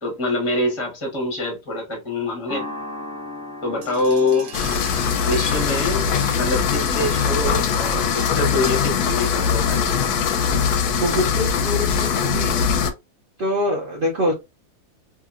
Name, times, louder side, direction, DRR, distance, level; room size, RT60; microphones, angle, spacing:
voice 1, 0.0-2.7 3.6-4.5 5.2-6.0 6.3-9.8, left 2 dB, 25° left, 0.8 m, -25 dB
sound 1, 2.5-11.0, left 1 dB, 15° right, 0.8 m, -39 dB
sound 2, 3.8-9.4, right 6 dB, 75° right, 1.4 m, -41 dB
sound 3, 4.5-12.9, left 7 dB, 75° left, 1.0 m, -21 dB
voice 2, 11.0-12.6 13.4-14.3, left 1 dB, 55° right, 0.5 m, -24 dB
2.8 x 2.6 x 2.3 m
omnidirectional pair, 1.8 m